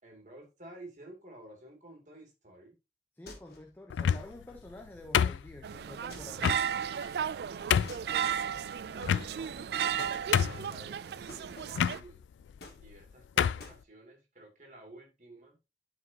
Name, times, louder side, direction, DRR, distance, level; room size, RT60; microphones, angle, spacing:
voice 1, 0.0-2.8 7.2-12.2 12.8-15.6, right 2 dB, 40° right, 2.7 m, -53 dB
voice 2, 3.2-6.5, left 1 dB, 10° left, 0.8 m, -48 dB
sound 1, 3.3-3.8 6.1-6.6 7.9-8.7 10.0-10.3 11.3-11.9 12.6-13.2 13.6-13.8, left 2 dB, 60° left, 1.6 m, -50 dB
sound 2, 3.9-4.4 5.1-5.8 6.4-6.6 7.2-7.3 7.7-8.0 9.0-9.6 9.9-10.0 10.3-10.8 11.7-12.0 12.8-13.0 13.4-13.7, left 8 dB, 85° left, 0.3 m, -27 dB
sound 3, 5.6-12.0, right 8 dB, 60° right, 0.3 m, -34 dB
11.5 x 5.0 x 2.8 m
head